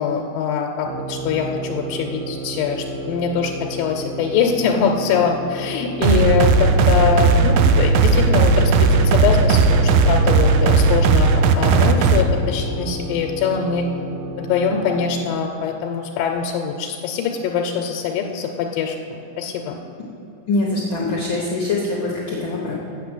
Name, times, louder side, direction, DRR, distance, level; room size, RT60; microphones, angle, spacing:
voice 1, 0.0-13.9 14.4-19.8, left 6 dB, 85° left, 2 dB, 2.4 m, -23 dB
sound 1, 0.8-15.4, equal, 75° right, 1.3 m, -32 dB
sound 2, 6.0-12.2, right 4 dB, 90° right, 1.6 m, -15 dB
voice 2, 20.5-22.7, left 2 dB, 70° left, -3 dB, 1.1 m, -23 dB
7.7 x 7.2 x 7.7 m, 2.9 s
omnidirectional pair, 3.9 m